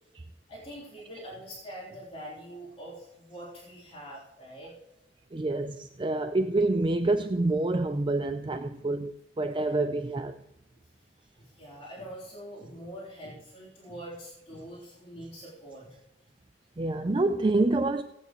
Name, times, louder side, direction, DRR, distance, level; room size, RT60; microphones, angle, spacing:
voice 1, 0.5-4.7 11.4-15.9, equal, 35° left, 3.7 m, -44 dB
voice 2, 5.3-10.4 16.8-18.0, right 2 dB, 25° right, 0.4 m, -27 dB
18.0 x 9.0 x 3.1 m
head